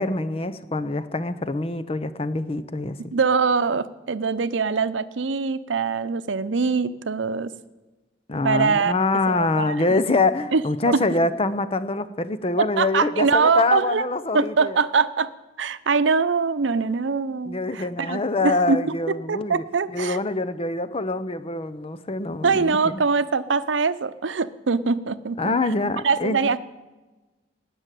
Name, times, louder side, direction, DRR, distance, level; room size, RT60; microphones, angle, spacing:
voice 1, 0.0-3.1 8.3-14.8 17.4-23.0 25.4-26.5, left 2 dB, 30° left, 13 dB, 0.8 m, -25 dB
voice 2, 3.0-7.5 8.4-8.9 9.3-10.2 10.5-11.0 12.6-14.0 14.3-15.3 15.6-18.8 19.3-20.2 22.4-25.4 26.0-26.6, right 5 dB, 85° right, 14 dB, 0.7 m, -23 dB
18.5 x 6.4 x 9.1 m, 1.2 s
head